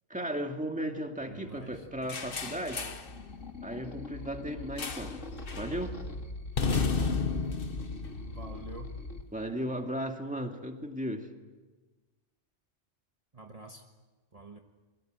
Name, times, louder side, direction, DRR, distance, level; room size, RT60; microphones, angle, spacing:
voice 1, 0.1-2.9 3.6-5.2 5.6-6.0 9.3-11.3, equal, 5° right, 4 dB, 2.2 m, -35 dB
sound 1, 1.3-9.2, left 2 dB, 90° left, 2.6 m, -43 dB
voice 2, 1.3-2.3 8.1-8.9 13.3-13.8 14.3-14.6, right 2 dB, 30° right, 3 dB, 1.5 m, -48 dB
sound 2, 2.1-3.1 4.8-5.2 5.5-5.8 6.6-8.9, left 4 dB, 50° left, 1.5 m, -32 dB
28.5 x 23.5 x 7.8 m, 1.2 s
omnidirectional pair, 1.3 m